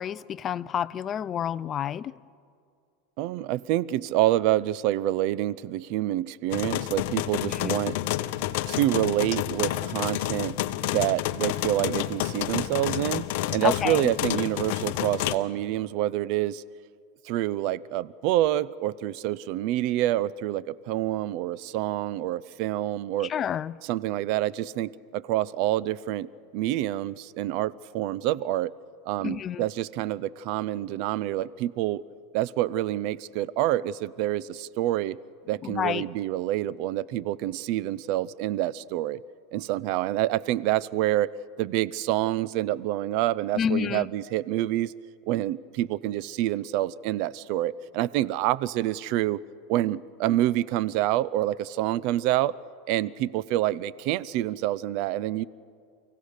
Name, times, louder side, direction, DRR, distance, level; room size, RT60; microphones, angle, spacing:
voice 1, 0.0-2.1 7.5-7.8 13.6-14.0 23.2-23.8 29.2-29.6 35.6-36.0 43.5-44.1, left 9 dB, 30° left, 18 dB, 0.4 m, -29 dB
voice 2, 3.2-8.0 8.7-10.6 10.9-13.2 13.5-16.6 17.2-23.3 23.8-28.7 29.0-32.0 32.3-35.2 35.5-39.2 39.5-41.3 41.6-44.9 45.3-49.4 49.7-52.5 52.9-55.4, right 14 dB, 55° right, 20 dB, 0.5 m, -27 dB
sound 1, 6.5-15.3, left 14 dB, 65° left, 0.8 m, -29 dB
29.5 x 16.0 x 6.6 m, 2.3 s
supercardioid pair, 135°, 0 cm